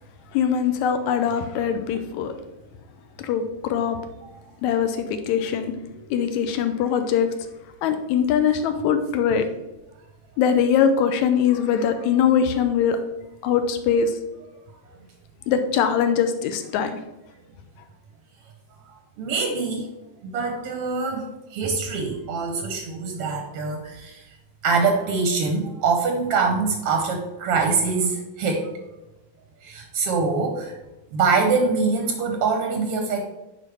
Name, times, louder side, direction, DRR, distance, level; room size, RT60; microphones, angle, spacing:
voice 1, 0.3-2.3 3.2-4.0 4.6-5.7 6.1-7.3 7.8-9.5 10.4-13.0 13.4-14.1 15.5-16.9, left 7 dB, 80° left, 8 dB, 1.9 m, -22 dB
voice 2, 18.9-19.9 20.2-24.3 24.6-28.7 29.6-30.7 31.1-33.2, right 4 dB, 75° right, 3 dB, 1.4 m, -24 dB
9.1 x 4.5 x 3.4 m, 0.98 s
omnidirectional pair, 3.6 m